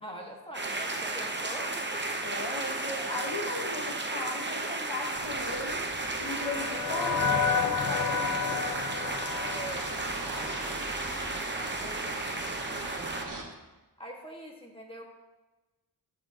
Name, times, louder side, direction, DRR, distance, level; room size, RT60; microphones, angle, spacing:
voice 1, 0.0-2.2 9.4-10.9 11.5-13.2 14.0-15.0, equal, 15° left, -1 dB, 1.7 m, -44 dB
sound 1, 0.5-13.3, right 2 dB, 25° right, 0.8 m, -34 dB
voice 2, 2.1-5.8 6.2-8.9, left 3 dB, 80° left, 3 dB, 1.4 m, -37 dB
sound 2, 5.1-13.4, right 2 dB, 50° right, 1.7 m, -42 dB
sound 3, 5.5-10.8, left 6 dB, 45° left, 0.7 m, -32 dB
13.0 x 7.5 x 2.9 m, 1.1 s
wide cardioid pair, 75°, 41 cm